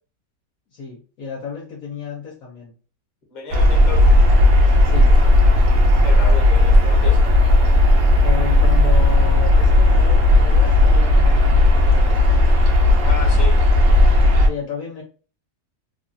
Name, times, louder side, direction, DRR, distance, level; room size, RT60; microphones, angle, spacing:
voice 1, 0.7-2.7 4.8-5.2 8.1-12.6 14.4-15.0, left 6 dB, 60° left, -3 dB, 1.0 m, -33 dB
voice 2, 3.3-4.1 6.0-7.2 13.0-13.6, left 3 dB, 35° left, 0 dB, 0.9 m, -32 dB
sound 1, 3.5-14.5, left 1 dB, 65° right, 1.0 m, -14 dB
3.1 x 2.3 x 2.5 m, 0.38 s
omnidirectional pair, 1.9 m